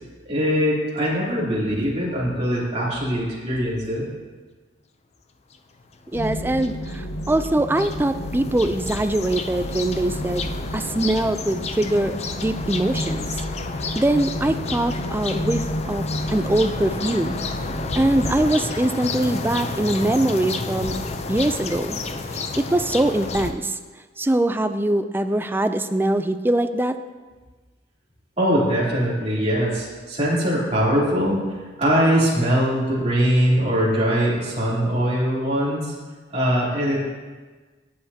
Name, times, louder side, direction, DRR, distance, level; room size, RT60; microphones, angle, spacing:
voice 1, 0.2-4.1 28.4-31.4 31.8-35.9 36.3-37.0, equal, 35° right, -7 dB, 3.1 m, -21 dB
sound 1, 5.5-5.6 5.9-23.5, left 3 dB, 35° left, 0.6 m, -31 dB
sound 2, 6.1-18.3, equal, 85° left, 1.0 m, -32 dB
voice 2, 6.1-10.5 10.7-12.2 12.4-13.3 14.0-17.4 18.0-20.9 21.3-22.0 22.3-23.8 24.2-27.0, right 1 dB, 10° right, 9 dB, 0.4 m, -22 dB
17.0 x 8.0 x 2.8 m, 1.4 s
head